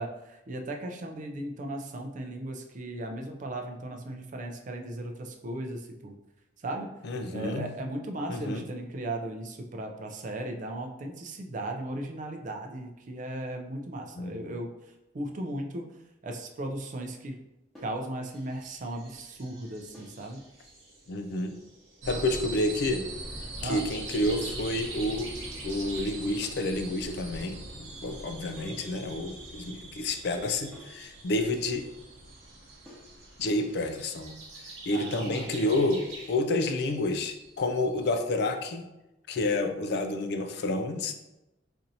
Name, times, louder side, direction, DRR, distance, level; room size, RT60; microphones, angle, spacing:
voice 1, 0.0-6.2 6.6-6.9 7.3-14.7 15.1-15.9 16.2-17.4 17.8-20.4 23.6-23.8 34.9-35.5, right 1 dB, 45° right, 3 dB, 0.4 m, -36 dB
voice 2, 7.0-7.7 8.3-8.6 14.2-14.3 21.1-21.6 22.1-23.1 23.6-25.3 25.6-27.6 28.0-31.9 33.4-34.3 34.9-38.9 39.3-41.1, left 2 dB, 60° left, 6 dB, 0.4 m, -29 dB
sound 1, 17.7-18.1 19.9-20.2 22.1-22.4 24.3-24.6 26.4-26.7 28.6-28.9 30.7-31.0 32.9-33.2, left 1 dB, ahead, 0.9 m, -51 dB
sound 2, 18.3-36.4, right 2 dB, 85° right, 1.2 m, -48 dB
sound 3, 22.0-38.1, right 2 dB, 65° right, 0.8 m, -43 dB
4.3 x 2.6 x 2.6 m, 0.94 s
head